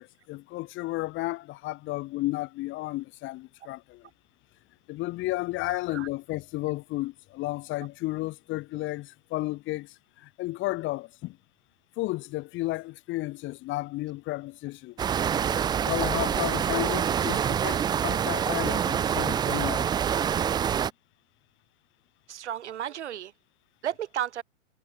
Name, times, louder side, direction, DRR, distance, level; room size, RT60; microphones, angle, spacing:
voice 1, 0.0-4.1 4.9-11.4 12.0-15.0 15.8-19.9, left 19 dB, 30° left, 4.2 m, -33 dB
voice 2, 5.7-6.1 22.3-23.3 23.8-24.4, right 11 dB, 60° right, 2.2 m, -33 dB
sound 1, 15.0-20.9, right 8 dB, 10° right, 0.7 m, -26 dB
figure-of-eight pair, 120°, 39 cm